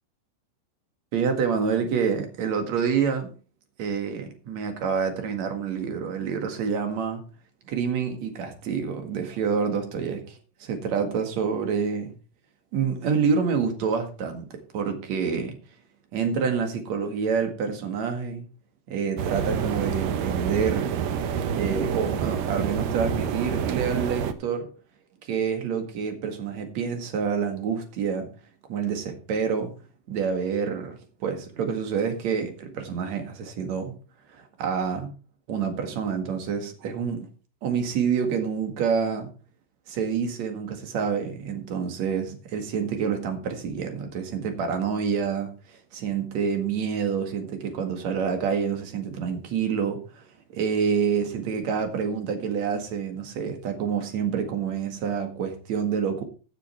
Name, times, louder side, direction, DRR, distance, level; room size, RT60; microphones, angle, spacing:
voice 1, 1.1-3.3 3.8-7.2 7.7-12.1 12.7-14.5 14.7-15.6 16.1-18.5 18.9-20.9 21.5-24.7 25.2-28.3 28.7-29.7 30.1-33.9 34.3-35.1 35.5-37.2 37.6-39.3 39.9-50.2 50.5-56.2, right 6 dB, 50° right, 5 dB, 2.7 m, -27 dB
sound 1, 19.2-24.3, right 7 dB, 90° right, 1.5 m, -28 dB
14.5 x 6.6 x 4.4 m, 0.36 s
omnidirectional pair, 4.4 m